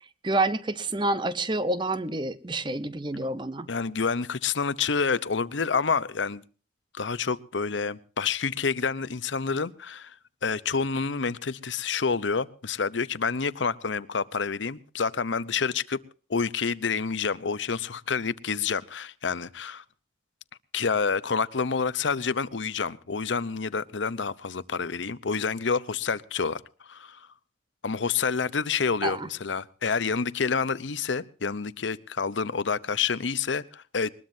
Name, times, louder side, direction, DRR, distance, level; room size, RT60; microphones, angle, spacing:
voice 1, 0.2-3.7 29.0-29.3, right 2 dB, 25° right, 0.8 m, -28 dB
voice 2, 3.7-6.4 6.9-10.1 10.4-16.0 16.3-19.8 20.7-26.6 26.9-27.3 27.8-34.1, left 5 dB, 85° left, 0.8 m, -28 dB
21.0 x 21.0 x 2.7 m
head